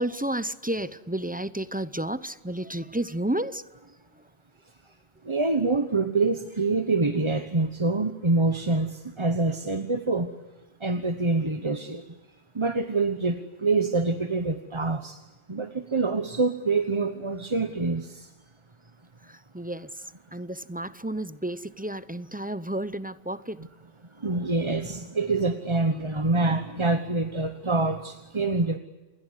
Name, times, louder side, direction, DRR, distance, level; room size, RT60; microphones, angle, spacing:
voice 1, 0.0-3.6 19.3-19.9 20.3-23.6, right 1 dB, 10° right, 14 dB, 0.5 m, -31 dB
voice 2, 5.2-10.3 10.8-12.1 12.5-15.2 15.5-18.3 23.6-23.7 24.2-28.8, right 3 dB, 25° right, 8 dB, 1.1 m, -26 dB
28.5 x 21.0 x 8.3 m, 1.2 s
omnidirectional pair, 1.2 m